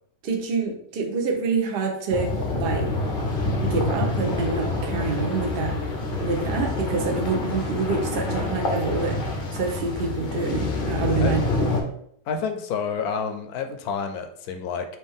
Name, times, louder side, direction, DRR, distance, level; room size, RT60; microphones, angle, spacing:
voice 1, 0.2-2.9 3.6-5.8 6.2-11.7, right 4 dB, 50° right, 2 dB, 0.7 m, -27 dB
sound 1, 2.1-11.8, left 2 dB, 50° left, 0.6 m, -27 dB
voice 2, 12.3-14.9, left 6 dB, 70° left, 7 dB, 1.0 m, -29 dB
4.4 x 2.9 x 3.5 m, 0.69 s
omnidirectional pair, 1.8 m